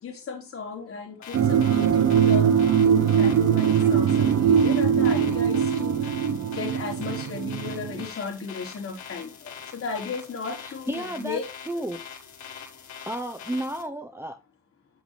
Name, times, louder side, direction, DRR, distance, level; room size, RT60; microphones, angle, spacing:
voice 1, 0.0-2.5 2.8-6.0 6.3-11.5 11.7-11.8, left 5 dB, 45° left, 4.9 m, -35 dB
sound 1, 1.2-13.8, left 7 dB, 65° left, 4.8 m, -43 dB
sound 2, 1.3-8.1, right 8 dB, 60° right, 1.1 m, -21 dB
voice 2, 10.6-11.4 11.7-12.0 13.1-14.4, right 1 dB, 10° right, 0.8 m, -32 dB
10.0 x 7.7 x 3.3 m
cardioid pair, 90°, 30 cm